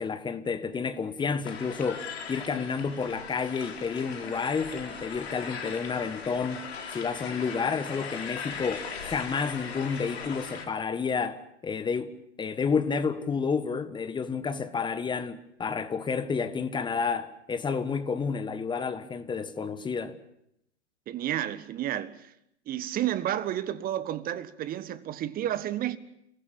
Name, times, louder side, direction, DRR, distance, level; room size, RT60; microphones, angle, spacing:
voice 1, 0.0-6.6 6.9-12.1 12.4-20.2, left 5 dB, 15° left, 1.5 m, -30 dB
sound 1, 1.4-10.7, left 6 dB, 60° left, 4.5 m, -39 dB
voice 2, 21.1-22.3 22.7-26.0, right 12 dB, 25° right, 1.4 m, -31 dB
29.0 x 15.5 x 8.6 m
figure-of-eight pair, 100°, 35 cm